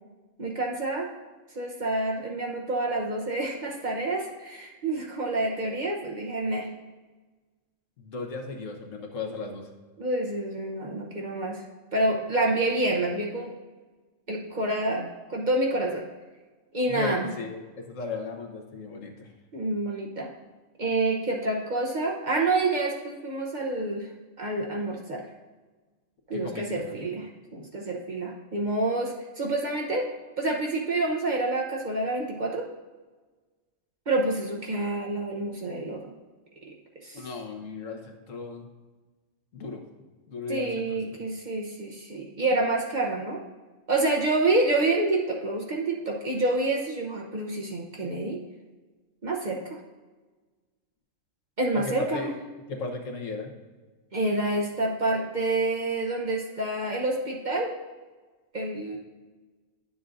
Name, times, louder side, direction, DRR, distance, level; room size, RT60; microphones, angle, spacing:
voice 1, 0.4-1.1 1.5-6.7 10.0-11.6 11.9-13.5 14.3-16.0 16.7-17.3 19.5-20.3 20.8-24.1 24.4-25.2 26.3-27.2 27.5-30.1 30.4-32.7 34.1-36.1 36.6-36.7 37.0-37.3 40.5-43.4 43.9-48.4 49.2-49.8 51.6-52.3 54.1-57.7 58.5-59.0, right 2 dB, 40° right, -1 dB, 0.9 m, -28 dB
voice 2, 8.0-9.7 16.9-19.3 26.3-27.0 37.1-38.7 39.5-39.8 40.3-41.0 51.7-52.3 52.7-53.5, left 3 dB, 80° left, 2 dB, 1.4 m, -36 dB
11.0 x 7.0 x 2.6 m, 1.3 s
omnidirectional pair, 1.3 m